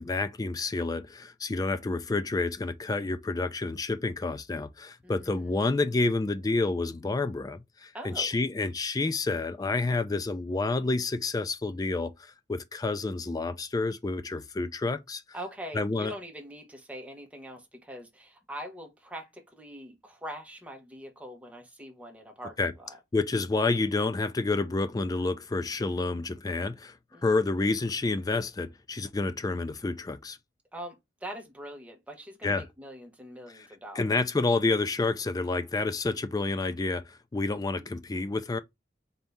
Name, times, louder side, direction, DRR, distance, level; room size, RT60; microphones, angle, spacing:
voice 1, 0.0-12.1 12.5-15.2 15.7-16.1 22.6-22.7 23.1-27.0 27.2-30.4 32.4-32.6 34.0-38.6, left 3 dB, 20° left, 0.3 m, -29 dB
voice 2, 5.0-5.8 7.9-8.3 15.3-23.0 27.1-27.2 30.7-34.5 37.6-37.9, equal, 5° right, 1.0 m, -43 dB
4.1 x 2.7 x 3.5 m
head